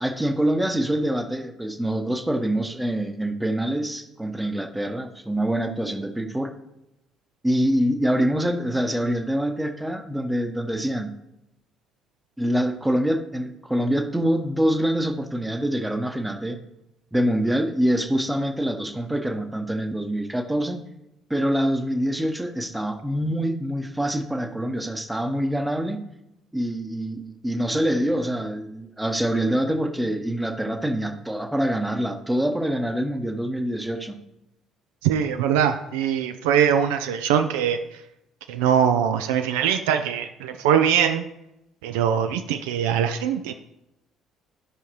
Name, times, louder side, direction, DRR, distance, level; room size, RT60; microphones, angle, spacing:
voice 1, 0.0-6.5 7.4-11.1 12.4-16.6 17.1-20.8 21.3-26.0 26.5-34.2, equal, 5° right, 7 dB, 0.9 m, -25 dB
voice 2, 35.0-37.8 38.5-41.3 41.8-43.5, right 8 dB, 65° right, 8 dB, 0.3 m, -22 dB
12.5 x 5.7 x 3.1 m, 0.87 s
figure-of-eight pair, 50°, 0 cm